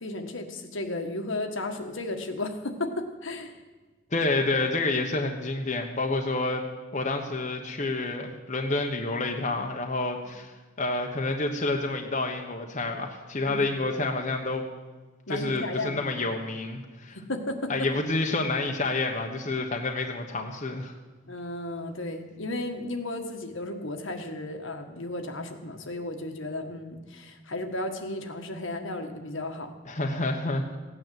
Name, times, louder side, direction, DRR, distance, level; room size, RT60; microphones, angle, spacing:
voice 1, 0.0-3.6 13.5-13.7 15.3-16.1 17.1-17.9 21.3-29.7, left 2 dB, 70° left, 5 dB, 1.6 m, -34 dB
voice 2, 4.1-6.7 6.9-10.5 10.8-14.6 15.3-17.2 17.7-20.9 29.9-30.8, left 2 dB, 35° left, 2 dB, 1.2 m, -29 dB
16.0 x 9.4 x 7.8 m, 1.3 s
head